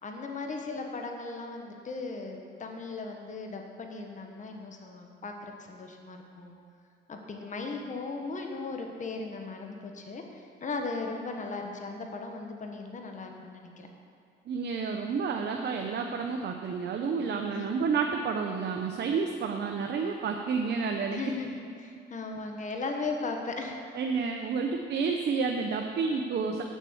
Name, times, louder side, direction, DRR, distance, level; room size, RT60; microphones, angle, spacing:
voice 1, 0.0-6.6 7.1-13.9 17.5-17.7 21.1-23.8, left 3 dB, 40° left, 2 dB, 1.2 m, -37 dB
voice 2, 14.5-21.2 23.9-26.6, right 5 dB, 60° right, 3 dB, 0.8 m, -30 dB
8.4 x 7.3 x 7.1 m, 2.3 s
cardioid pair, 90°, 20 cm